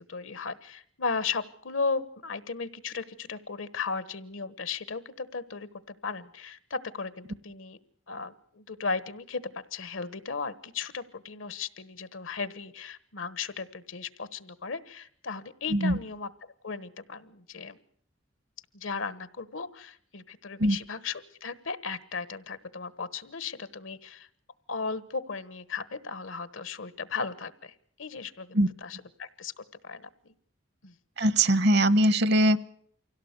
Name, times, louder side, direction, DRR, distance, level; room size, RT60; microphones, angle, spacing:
voice 1, 0.1-7.8 8.1-16.3 16.6-17.8 18.7-24.3 24.7-27.7 28.0-30.3 30.8-30.9, left 4 dB, 85° left, 16 dB, 1.2 m, -36 dB
voice 2, 31.2-32.6, right 1 dB, 60° right, 17 dB, 0.9 m, -21 dB
24.5 x 17.0 x 8.1 m, 0.64 s
head